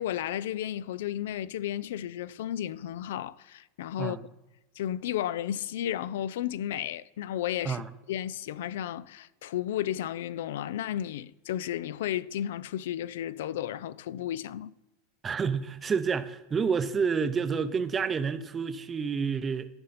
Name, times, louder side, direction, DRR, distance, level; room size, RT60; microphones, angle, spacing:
voice 1, 0.0-4.2 4.8-7.8 8.1-14.7, left 11 dB, 80° left, 0.3 m, -33 dB
voice 2, 15.2-19.7, right 6 dB, 20° right, 0.6 m, -29 dB
14.0 x 5.2 x 4.1 m
supercardioid pair, 125°, 0 cm